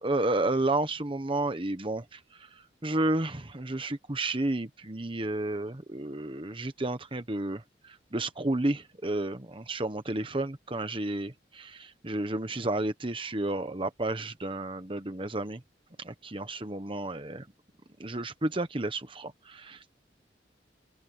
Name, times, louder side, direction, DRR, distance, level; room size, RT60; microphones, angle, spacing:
voice 1, 0.0-15.6 16.0-17.5 18.0-20.0, right 2 dB, 30° right, 1.2 m, -32 dB
open air
head